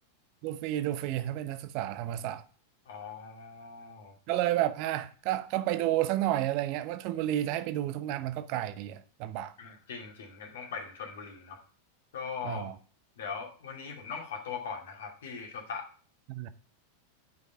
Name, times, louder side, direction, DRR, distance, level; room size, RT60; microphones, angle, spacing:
voice 1, 0.4-2.4 4.3-9.5 12.4-12.8 16.3-16.5, right 13 dB, 45° right, 0.8 m, -31 dB
voice 2, 2.9-4.1 9.6-11.6 12.1-12.6 13.2-15.9, left 5 dB, 60° left, 2.4 m, -40 dB
9.4 x 5.6 x 4.3 m
figure-of-eight pair, 90°, 0 cm